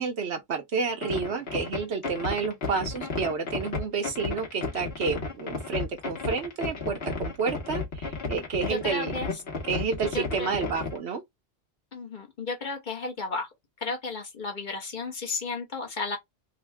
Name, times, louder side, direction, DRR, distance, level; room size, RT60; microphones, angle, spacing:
voice 1, 0.0-9.2 9.7-11.2, right 5 dB, 80° right, 1.2 m, -30 dB
sound 1, 1.0-11.0, left 4 dB, 65° left, 1.4 m, -33 dB
voice 2, 8.7-9.3 10.1-10.5 11.9-13.5 13.8-16.2, left 3 dB, 45° left, 1.1 m, -33 dB
3.6 x 2.2 x 3.5 m
omnidirectional pair, 1.1 m